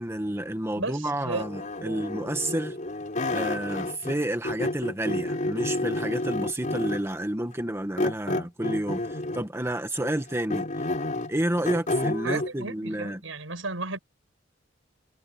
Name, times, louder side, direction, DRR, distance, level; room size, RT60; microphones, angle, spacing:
voice 1, 0.0-2.7 3.3-10.9 11.3-13.2, right 1 dB, 15° right, 1.6 m, -30 dB
voice 2, 0.8-1.4 1.8-2.0 2.4-2.6 12.2-14.0, right 2 dB, 80° right, 6.8 m, -34 dB
sound 1, 1.3-4.2 4.4-7.1 8.0-9.6 10.0-12.5, left 2 dB, 40° left, 4.8 m, -30 dB
head